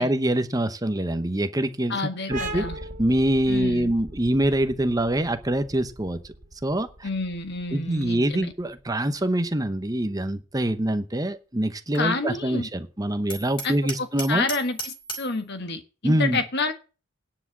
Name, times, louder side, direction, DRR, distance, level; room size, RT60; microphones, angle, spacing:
voice 1, 0.0-2.0 2.3-2.6 3.0-6.2 6.6-7.1 7.7-14.4 16.0-16.4, right 1 dB, 15° right, 0.9 m, -24 dB
voice 2, 1.9-2.8 3.5-3.9 7.0-8.5 11.9-12.7 13.6-16.7, left 3 dB, 50° left, 1.4 m, -29 dB
sound 1, 2.3-9.6, right 1 dB, 40° right, 2.9 m, -39 dB
Hammer, 13.3-15.4, right 1 dB, 20° left, 2.7 m, -35 dB
10.0 x 6.0 x 7.3 m
head